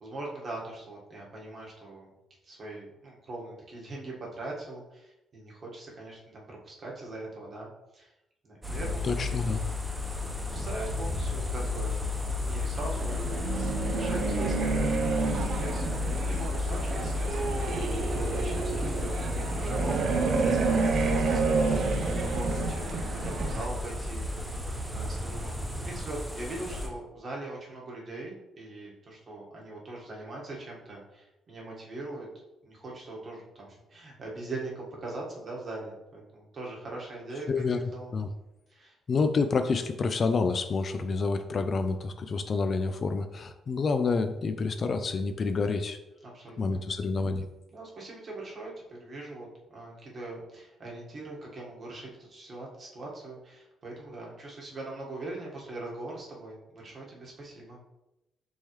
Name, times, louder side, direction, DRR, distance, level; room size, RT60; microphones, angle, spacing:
voice 1, 0.0-2.1 2.4-8.1 8.4-9.0 9.5-9.6 9.8-13.1 13.8-22.0 22.3-32.3 32.6-37.5 37.7-38.1 38.7-38.9 46.2-47.0 47.7-57.8, right 2 dB, 45° right, -3 dB, 1.5 m, -41 dB
sound 1, 8.6-26.9, left 2 dB, 5° right, 1.0 m, -32 dB
voice 2, 9.0-9.6 37.5-37.8 38.1-38.3 39.1-46.0 46.6-47.5, left 4 dB, 45° left, 8 dB, 0.4 m, -28 dB
sound 2, 13.0-23.7, right 4 dB, 65° right, 0.5 m, -30 dB
5.4 x 3.1 x 3.1 m, 0.95 s
cardioid pair, 90°, 0 cm